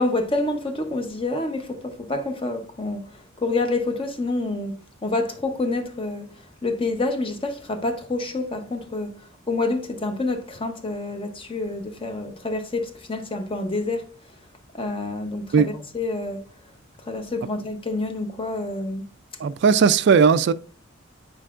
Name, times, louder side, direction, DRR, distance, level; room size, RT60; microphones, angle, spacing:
voice 1, 0.0-6.3 6.6-9.1 9.5-14.0 14.7-16.4 17.1-19.0, left 2 dB, 25° left, 0.8 m, -27 dB
voice 2, 19.4-20.5, right 6 dB, 55° right, 0.3 m, -17 dB
8.9 x 4.6 x 2.4 m
head